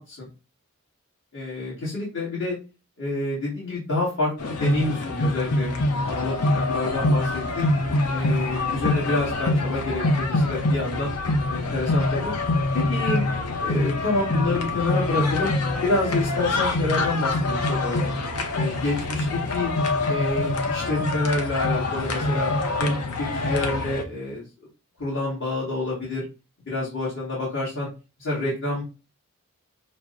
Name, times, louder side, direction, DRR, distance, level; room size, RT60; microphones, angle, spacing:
voice 1, 1.3-2.6 3.0-5.7 6.0-7.7 8.1-11.1 11.5-12.3 12.7-13.2 13.6-15.5 15.8-18.1 18.5-19.7 20.1-22.5 22.8-24.4 25.0-26.3 26.6-27.9 28.2-28.8, left 2 dB, 55° left, -7 dB, 1.5 m, -28 dB
sound 1, 4.4-24.0, left 2 dB, 75° left, 0.6 m, -25 dB
5.7 x 2.1 x 2.4 m, 0.31 s
head